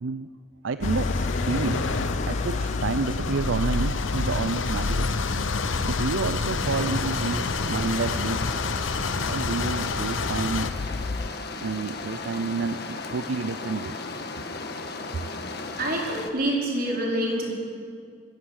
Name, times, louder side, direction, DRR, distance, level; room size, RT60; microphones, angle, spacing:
voice 1, 0.6-1.8 2.2-5.1 5.8-8.6 9.1-10.7 11.2-11.3 11.6-14.0, right 4 dB, 75° right, 12 dB, 0.5 m, -29 dB
sound 1, 0.8-10.7, left 4 dB, 80° left, 1.0 m, -29 dB
sound 2, 0.8-11.3, left 3 dB, 35° left, 0.4 m, -31 dB
sound 3, 6.6-16.3, left 3 dB, 55° left, 1.6 m, -36 dB
voice 2, 15.7-17.5, right 1 dB, 50° right, -2 dB, 4.7 m, -26 dB
21.0 x 15.5 x 8.1 m, 2.2 s
head